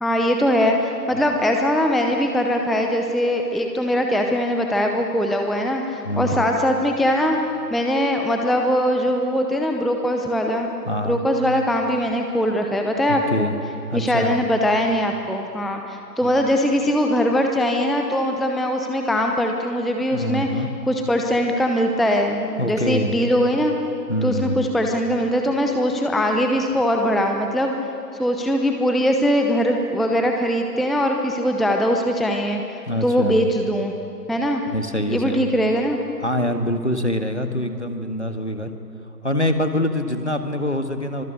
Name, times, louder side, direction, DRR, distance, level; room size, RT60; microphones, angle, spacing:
voice 1, 0.0-7.4 7.7-10.7 11.0-13.5 13.9-20.5 20.9-23.7 24.2-27.7 28.2-33.9 34.3-34.6 35.1-36.0, equal, ahead, 3 dB, 0.8 m, -21 dB
voice 2, 6.1-6.5 10.9-11.2 13.1-13.6 13.9-14.4 16.2-16.4 20.1-20.7 22.6-23.2 24.1-24.6 32.9-33.5 34.7-35.5 36.2-38.7 39.2-41.2, left 1 dB, 45° left, 7 dB, 1.7 m, -25 dB
26.0 x 24.5 x 8.3 m, 2.7 s
figure-of-eight pair, 175°, 50 cm